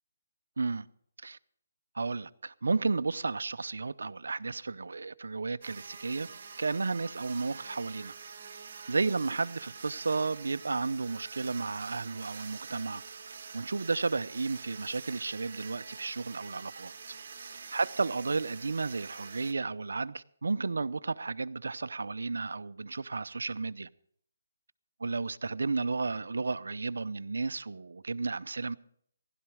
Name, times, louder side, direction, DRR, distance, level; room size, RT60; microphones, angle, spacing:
voice 1, 0.6-0.9 1.2-1.4 1.9-6.3 6.6-8.1 8.9-16.9 17.5-23.9 25.0-28.7, right 3 dB, 80° right, 0.6 m, -33 dB
sound 1, 5.6-19.5, right 5 dB, 50° right, 2.1 m, -46 dB
15.5 x 12.0 x 5.0 m
hypercardioid pair, 165°, 0 cm